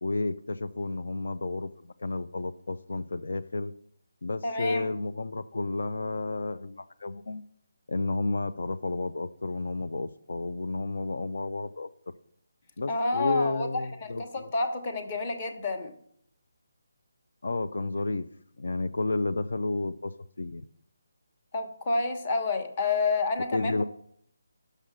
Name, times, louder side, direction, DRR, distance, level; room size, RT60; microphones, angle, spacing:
voice 1, 0.0-3.7 4.2-7.4 7.9-11.9 12.8-14.5 17.4-18.3 18.6-20.6 23.5-23.8, left 3 dB, 70° left, 10 dB, 0.5 m, -31 dB
voice 2, 4.4-4.9 12.9-15.9 21.5-23.7, left 3 dB, 25° left, 7 dB, 1.0 m, -29 dB
10.0 x 6.6 x 6.2 m, 0.67 s
hypercardioid pair, 175°, 0 cm